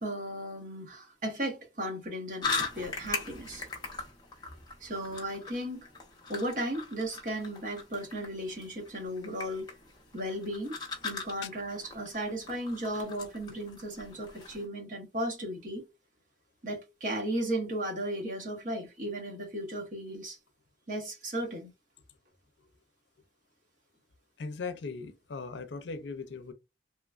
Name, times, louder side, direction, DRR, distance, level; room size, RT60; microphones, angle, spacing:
voice 1, 0.0-3.7 4.8-5.9 6.3-9.7 10.1-10.8 11.0-15.8 16.6-20.4 20.9-21.7, right 1 dB, 45° right, 1.0 m, -35 dB
sound 1, 2.4-14.7, left 4 dB, 20° left, 0.6 m, -40 dB
voice 2, 24.4-26.5, left 4 dB, 75° left, 0.5 m, -38 dB
2.9 x 2.2 x 2.4 m
head